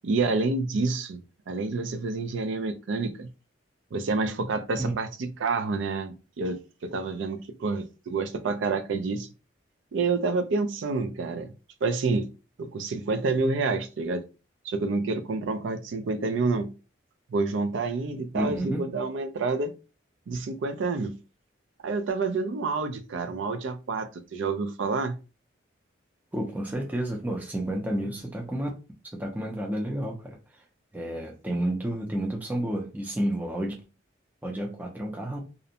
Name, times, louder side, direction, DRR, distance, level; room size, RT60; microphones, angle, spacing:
voice 1, 0.0-1.2 1.5-3.3 3.9-9.3 9.9-11.5 11.8-12.3 12.6-14.2 14.6-16.7 17.3-19.7 20.3-21.1 21.8-25.2, right 3 dB, 75° right, 0.4 m, -28 dB
voice 2, 18.3-18.9 26.3-28.7 29.1-30.4 30.9-33.7 34.4-35.4, right 1 dB, 10° right, 0.4 m, -30 dB
2.5 x 2.0 x 2.7 m
head